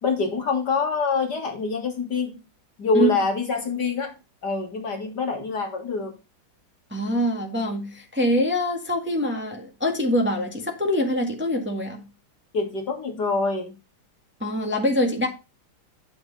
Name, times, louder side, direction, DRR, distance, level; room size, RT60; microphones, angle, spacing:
voice 1, 0.0-2.3 2.8-4.1 4.4-6.1 12.5-13.7, left 4 dB, 50° left, 3 dB, 2.4 m, -25 dB
voice 2, 6.9-12.0 14.4-15.3, equal, 5° right, 2 dB, 1.6 m, -24 dB
10.5 x 6.3 x 4.0 m, 0.29 s
omnidirectional pair, 2.3 m